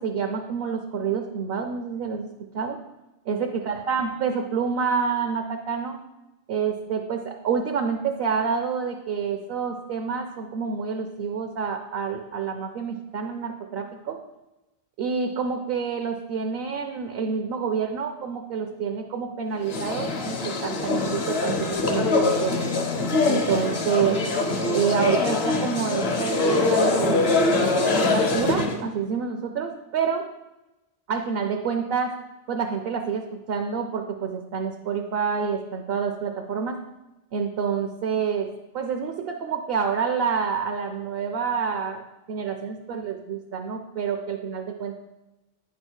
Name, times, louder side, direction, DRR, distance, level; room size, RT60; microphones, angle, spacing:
voice 1, 0.0-2.3 2.5-2.8 3.3-6.0 6.5-14.2 15.0-22.5 23.3-24.2 24.7-27.4 28.0-30.2 31.1-32.2 32.5-36.8 37.3-42.0 42.3-44.9, right 6 dB, 65° right, 5 dB, 0.8 m, -28 dB
sound 1, 19.6-28.8, left 3 dB, 65° left, 1.1 m, -23 dB
9.1 x 3.2 x 6.2 m, 1.0 s
omnidirectional pair, 1.2 m